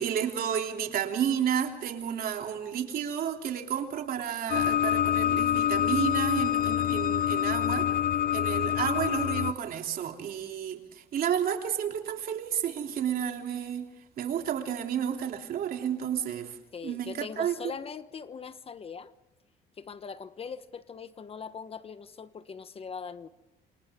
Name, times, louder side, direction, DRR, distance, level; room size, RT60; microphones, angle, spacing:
voice 1, 0.0-8.0 8.3-13.9 14.2-16.6 16.8-17.7, right 9 dB, 60° right, 3 dB, 3.2 m, -31 dB
sound 1, 4.5-9.5, left 10 dB, 60° left, 0.7 m, -26 dB
voice 2, 16.7-19.1 19.8-23.3, left 6 dB, 35° left, 12 dB, 1.1 m, -41 dB
28.5 x 27.0 x 3.7 m, 1.0 s
cardioid pair, 110°, 17 cm